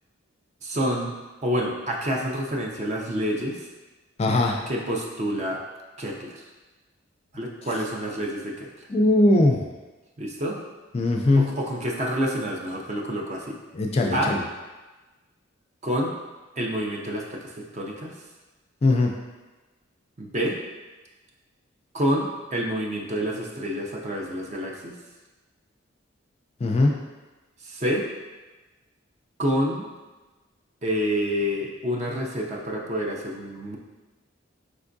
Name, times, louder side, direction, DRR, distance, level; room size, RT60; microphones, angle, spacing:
voice 1, 0.6-1.1 1.4-3.6 4.7-5.6 6.0-6.4 7.3-8.7 10.2-10.6 11.4-13.5 14.1-14.3 15.8-16.1 16.6-18.1 20.2-20.6 21.9-24.9 27.6-28.1 29.4-29.9 30.8-33.8, equal, 35° right, -1 dB, 0.5 m, -28 dB
voice 2, 4.2-4.6 8.9-9.7 10.9-11.5 13.7-14.4 18.8-19.1 26.6-26.9, left 2 dB, 30° left, 1 dB, 0.3 m, -20 dB
5.1 x 3.4 x 2.6 m, 1.2 s
head